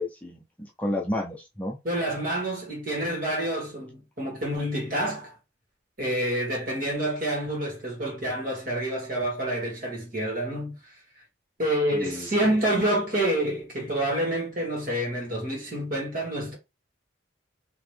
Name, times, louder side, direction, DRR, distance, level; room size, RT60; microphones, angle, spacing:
voice 1, 0.0-1.8 11.9-12.3, left 1 dB, 10° left, 0.6 m, -31 dB
voice 2, 1.8-5.3 6.0-11.0 11.6-16.5, right 1 dB, 45° right, 2.1 m, -28 dB
4.0 x 3.0 x 3.3 m
head